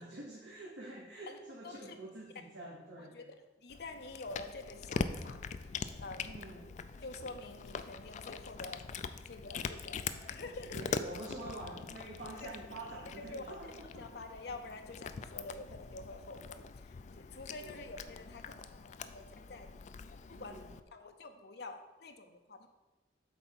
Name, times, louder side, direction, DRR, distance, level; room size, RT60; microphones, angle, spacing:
voice 1, 0.0-3.2 6.2-6.6 10.7-14.0 17.6-17.8 20.3-20.7, right 1 dB, 80° right, -3 dB, 1.1 m, -47 dB
voice 2, 1.6-2.0 3.0-3.2 3.6-5.4 6.0-6.4 7.0-8.8 9.3-11.0 12.4-12.5 13.2-13.4 14.0-19.2 19.5-19.7 20.3-20.5 20.9-22.7, left 3 dB, 60° left, 5 dB, 0.7 m, -47 dB
Cat, 3.7-20.8, left 5 dB, 40° left, 0.3 m, -43 dB
8.2 x 3.4 x 5.8 m, 1.1 s
head